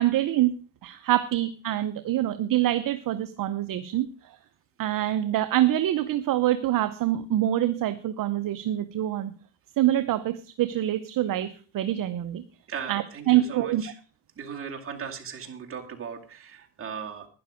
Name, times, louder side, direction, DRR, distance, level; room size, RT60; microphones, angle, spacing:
voice 1, 0.0-4.1 4.8-9.3 9.8-12.4 12.9-13.8, right 13 dB, 45° right, 11 dB, 0.8 m, -25 dB
voice 2, 12.7-13.9 14.4-17.3, right 7 dB, 25° right, 1 dB, 2.4 m, -38 dB
12.0 x 10.0 x 5.0 m, 0.38 s
cardioid pair, 135°, 48 cm